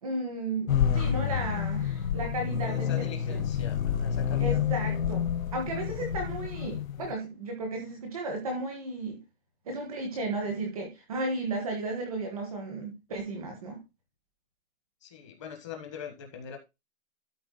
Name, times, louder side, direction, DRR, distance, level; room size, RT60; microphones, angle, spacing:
voice 1, 0.0-3.5 4.4-9.2 9.6-13.8, right 2 dB, ahead, 2 dB, 0.6 m, -34 dB
sound 1, 0.7-7.1, left 8 dB, 70° left, 0.9 m, -29 dB
voice 2, 2.6-4.6 15.0-16.6, left 7 dB, 20° left, 4 dB, 1.3 m, -42 dB
12.5 x 4.4 x 3.8 m, 0.25 s
hypercardioid pair, 180°, 42 cm